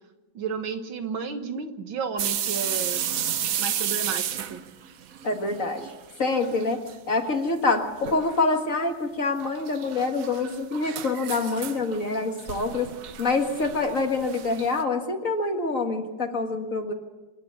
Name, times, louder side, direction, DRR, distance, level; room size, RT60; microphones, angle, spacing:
voice 1, 0.3-3.0 3.6-4.6, right 5 dB, 80° right, 7 dB, 2.2 m, -32 dB
sound 1, 2.2-6.0 6.3-7.0 7.3-7.4 8.0-8.4 9.4-14.8, right 9 dB, 60° right, 1.0 m, -32 dB
voice 2, 5.2-5.9 6.2-12.9 13.2-16.9, left 3 dB, 40° left, 4 dB, 2.0 m, -26 dB
27.5 x 9.8 x 9.5 m, 1.1 s
omnidirectional pair, 2.2 m